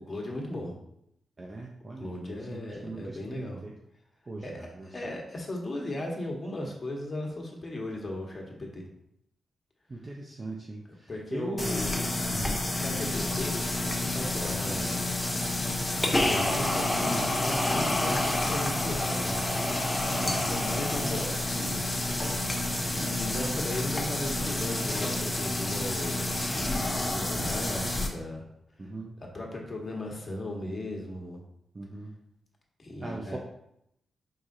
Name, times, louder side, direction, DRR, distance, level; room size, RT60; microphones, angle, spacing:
voice 1, 0.1-0.7 2.0-3.6 4.4-8.9 11.1-12.1 12.7-15.0 15.8-19.3 20.2-21.8 22.9-28.5 28.8-28.9 29.3-31.4 32.8-33.4, left 1 dB, 35° left, 0 dB, 1.2 m, -37 dB
voice 2, 1.4-3.7 4.3-5.1 9.9-11.9 12.3-12.6 20.2-20.4 22.8-23.0 28.8-29.1 31.7-32.1 33.0-33.4, right 2 dB, 40° right, -1 dB, 0.6 m, -39 dB
sound 1, 11.6-28.1, left 1 dB, 20° left, 0.8 m, -29 dB
4.8 x 3.7 x 2.5 m, 0.77 s
cardioid pair, 60°, 0 cm